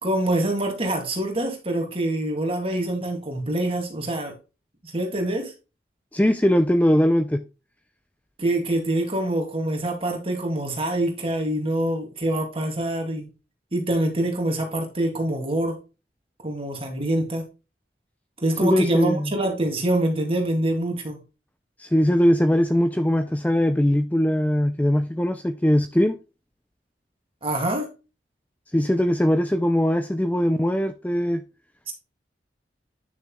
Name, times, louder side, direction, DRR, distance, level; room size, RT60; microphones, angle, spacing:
voice 1, 0.0-4.4 4.8-5.5 8.4-13.3 13.7-15.8 16.4-17.5 18.4-21.2 27.4-27.9 31.9-32.0, right 1 dB, 30° right, 2.6 m, -25 dB
voice 2, 6.1-7.4 18.6-19.3 21.8-26.2 28.7-31.4, equal, 10° left, 0.5 m, -21 dB
9.8 x 6.5 x 2.3 m
head